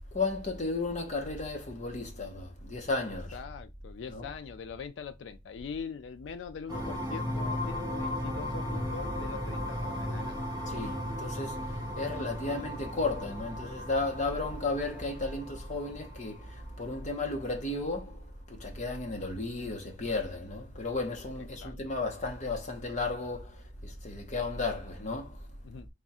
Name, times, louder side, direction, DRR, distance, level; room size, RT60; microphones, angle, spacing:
voice 1, 0.1-3.4 4.1-4.3 10.6-18.2 18.5-25.5, left 3 dB, 40° left, 0.9 m, -34 dB
voice 2, 3.3-10.4 21.4-21.7 25.6-25.9, left 6 dB, 70° left, 0.3 m, -42 dB
sound 1, 6.7-17.2, left 1 dB, 20° right, 0.9 m, -36 dB
3.5 x 2.4 x 4.1 m
head